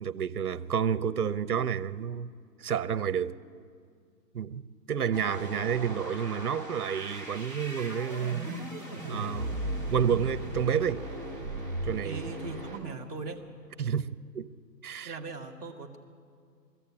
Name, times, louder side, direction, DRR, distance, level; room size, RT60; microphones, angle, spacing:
voice 1, 0.0-2.3 2.6-3.4 4.3-4.6 4.9-8.5 9.1-9.6 9.9-11.0 11.8-12.2 13.8-14.5 14.8-15.2, right 8 dB, 60° right, 0.8 m, -30 dB
sound 1, 5.1-12.8, right 1 dB, 30° left, 3.2 m, -37 dB
voice 2, 12.0-13.4 15.0-16.0, right 4 dB, 10° left, 1.0 m, -39 dB
22.0 x 14.0 x 8.6 m
hypercardioid pair, 180°, 50 cm